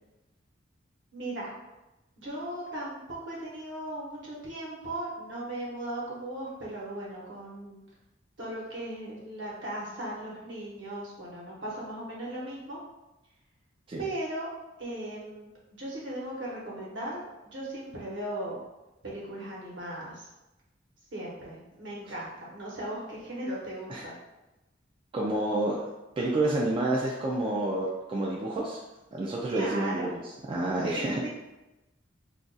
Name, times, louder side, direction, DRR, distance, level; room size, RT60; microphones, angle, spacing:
voice 1, 1.1-1.5 2.2-7.8 8.4-12.8 14.0-14.5 14.8-18.6 19.0-20.3 21.1-24.1 29.5-30.1 30.8-31.3, right 1 dB, 65° right, -5 dB, 1.0 m, -37 dB
voice 2, 25.1-25.8 26.2-28.8 29.1-30.1 30.5-31.3, right 2 dB, 25° right, -4 dB, 0.3 m, -29 dB
2.4 x 2.2 x 3.9 m, 1.0 s
head